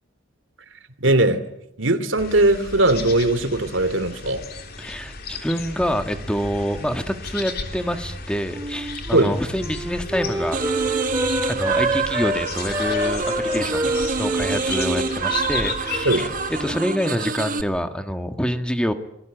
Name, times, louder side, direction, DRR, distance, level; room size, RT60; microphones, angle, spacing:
voice 1, 1.0-1.4 1.8-4.4 9.1-9.3 16.0-16.3, right 2 dB, 75° right, 12 dB, 2.7 m, -19 dB
sound 1, 2.2-16.7, left 4 dB, 50° left, 3.6 m, -34 dB
voice 2, 4.8-10.6 11.4-18.9, equal, 5° left, 7 dB, 1.5 m, -26 dB
Wind instrument woodwind instrument, 8.5-12.4 12.7-16.3 16.5-17.1, right 1 dB, 15° right, 3.0 m, -28 dB
sound 2, 10.5-17.6, right 5 dB, 45° right, 1.5 m, -27 dB
26.5 x 21.0 x 9.0 m, 0.83 s
head